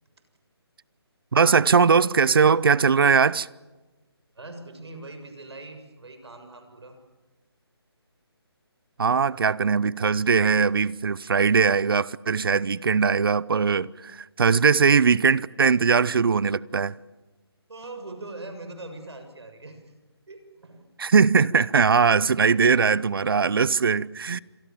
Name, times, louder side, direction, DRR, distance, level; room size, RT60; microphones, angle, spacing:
voice 1, 1.3-3.5 9.0-17.0 21.0-24.4, right 5 dB, 60° right, 0.8 m, -20 dB
voice 2, 4.3-7.0 17.7-19.9 20.3-20.9, right 2 dB, 75° right, 6.9 m, -41 dB
27.0 x 23.0 x 7.5 m
hypercardioid pair, 165°, 14 cm